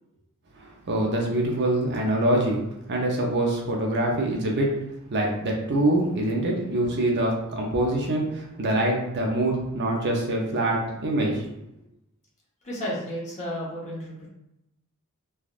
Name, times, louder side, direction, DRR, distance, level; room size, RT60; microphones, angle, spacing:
voice 1, 0.5-2.6 2.9-4.7 5.1-11.5, right 1 dB, 50° right, -1 dB, 0.6 m, -25 dB
voice 2, 12.6-14.3, equal, 35° left, -6 dB, 1.0 m, -32 dB
3.4 x 2.3 x 2.4 m, 0.87 s
head